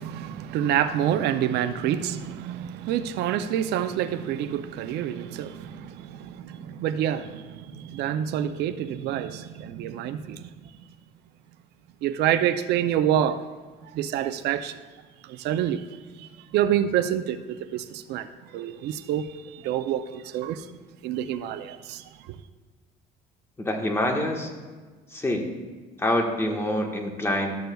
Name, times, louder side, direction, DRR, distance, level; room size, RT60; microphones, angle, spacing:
voice 1, 0.0-10.5 12.0-13.4 13.8-14.8 15.2-20.7 21.0-22.0, right 10 dB, 80° right, 0.5 m, -27 dB
voice 2, 23.6-24.5 25.1-25.4 26.0-27.5, left 1 dB, 15° left, 1.3 m, -26 dB
13.0 x 7.9 x 2.3 m
cardioid pair, 110°, 17 cm